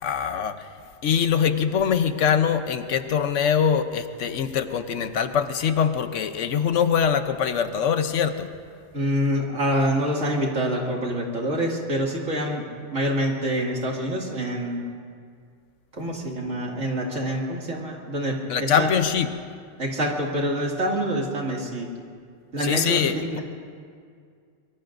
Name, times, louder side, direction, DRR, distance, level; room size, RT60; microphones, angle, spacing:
voice 1, 0.0-0.7 1.0-8.5 18.5-19.3 22.6-23.4, left 7 dB, 80° left, 9 dB, 1.1 m, -23 dB
voice 2, 8.9-12.6 12.9-14.8 16.0-18.9 19.8-21.9 22.5-23.4, equal, 85° right, -2 dB, 2.7 m, -26 dB
24.5 x 22.5 x 2.6 m, 2.2 s
omnidirectional pair, 1.3 m